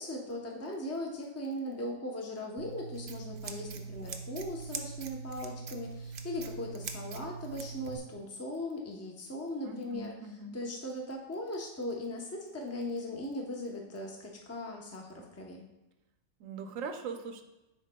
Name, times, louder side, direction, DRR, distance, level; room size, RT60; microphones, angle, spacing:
voice 1, 0.0-10.1 10.5-15.6, left 1 dB, 15° left, 0 dB, 0.6 m, -39 dB
Scissors, 2.6-8.0, right 5 dB, 60° right, 0.6 m, -42 dB
voice 2, 9.6-10.6 16.4-17.4, right 4 dB, 80° right, 6 dB, 1.0 m, -41 dB
10.0 x 4.3 x 2.2 m, 0.98 s
omnidirectional pair, 1.4 m